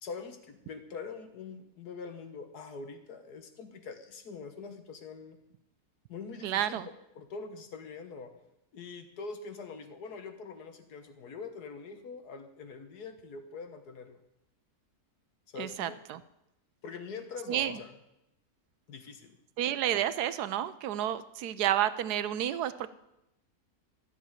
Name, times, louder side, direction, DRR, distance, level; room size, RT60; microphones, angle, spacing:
voice 1, 0.0-5.4 6.1-6.8 7.2-8.3 8.7-14.2 15.5-16.0 16.8-17.9 18.9-19.4, left 5 dB, 80° left, 7 dB, 1.7 m, -44 dB
voice 2, 6.4-6.9 15.6-16.2 17.5-17.8 19.6-22.9, right 11 dB, 85° right, 14 dB, 1.2 m, -30 dB
13.5 x 7.0 x 8.9 m, 0.87 s
omnidirectional pair, 1.7 m